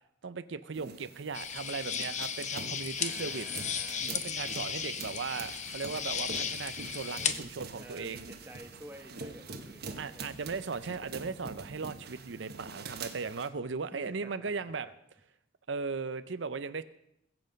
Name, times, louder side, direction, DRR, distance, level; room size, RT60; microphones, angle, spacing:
voice 1, 0.2-3.5 4.0-8.3 10.0-14.9 15.7-16.8, right 4 dB, 75° right, 13 dB, 0.7 m, -37 dB
sound 1, 0.7-13.5, right 4 dB, 55° right, 1.3 m, -45 dB
sound 2, 1.3-7.3, left 7 dB, 40° left, 0.9 m, -35 dB
voice 2, 3.0-4.1 6.8-10.3 14.1-14.9, right 1 dB, 10° right, 6 dB, 1.1 m, -51 dB
21.0 x 7.9 x 5.2 m, 0.79 s
head